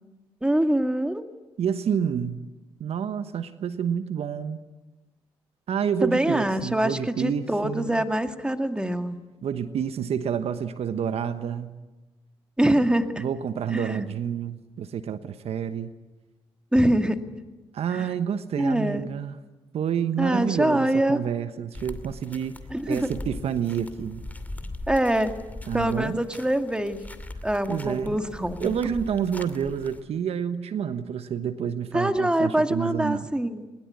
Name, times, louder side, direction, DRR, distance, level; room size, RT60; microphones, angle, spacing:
voice 1, 0.4-1.2 6.0-9.2 12.6-13.2 13.7-14.1 16.7-17.2 17.9-18.1 18.6-19.0 20.2-21.2 22.7-23.1 24.9-25.3 25.7-27.1 27.4-28.7 31.9-33.6, right 1 dB, 10° right, 7 dB, 2.2 m, -24 dB
voice 2, 1.6-2.4 2.8-4.6 5.7-8.0 9.4-11.7 13.2-15.9 17.7-19.4 19.7-22.5 22.9-24.2 25.7-26.2 27.7-28.2 28.6-33.3, right 8 dB, 60° right, 11 dB, 1.2 m, -29 dB
sound 1, 21.7-30.0, left 2 dB, 15° left, 2.5 m, -40 dB
21.5 x 21.0 x 9.6 m, 1.1 s
hypercardioid pair, 50°, 11 cm